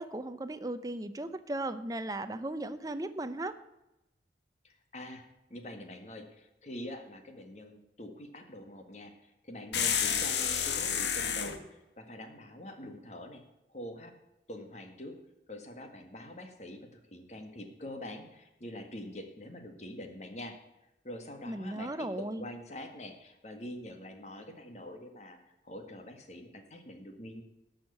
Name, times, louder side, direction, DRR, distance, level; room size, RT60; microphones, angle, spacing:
voice 1, 0.0-3.5 21.5-22.5, right 1 dB, 20° right, 10 dB, 0.6 m, -36 dB
voice 2, 4.6-13.4 13.7-14.1 14.5-15.2 15.5-20.6 21.0-25.4 25.6-27.4, left 1 dB, 40° left, 5 dB, 1.7 m, -45 dB
sound 1, 9.7-11.6, left 7 dB, 75° left, 1.3 m, -30 dB
12.0 x 6.6 x 8.3 m, 0.93 s
head